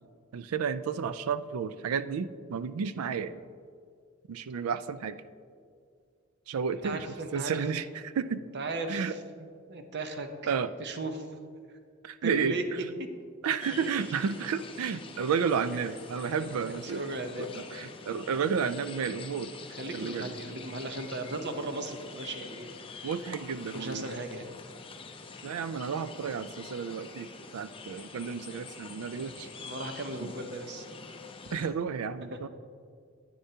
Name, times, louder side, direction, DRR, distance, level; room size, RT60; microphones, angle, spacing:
voice 1, 0.3-3.4 4.3-5.2 6.5-7.1 7.3-8.4 8.9-9.1 10.5-10.7 12.0-12.9 13.4-17.0 17.4-19.5 19.9-20.3 23.0-24.1 25.4-29.5 30.2-30.3 31.5-32.5, right 6 dB, 85° right, 13 dB, 0.4 m, -32 dB
voice 2, 6.8-7.6 8.5-10.5 10.8-11.3 12.2-12.6 13.0-13.1 13.7-13.8 16.4-17.7 19.6-22.7 23.0-23.1 23.7-24.5 29.0-30.8 32.3-32.4, right 2 dB, 55° right, 6 dB, 0.8 m, -37 dB
sound 1, 13.6-31.7, left 4 dB, 25° left, 0.5 m, -46 dB
10.0 x 9.4 x 2.8 m, 2.2 s
head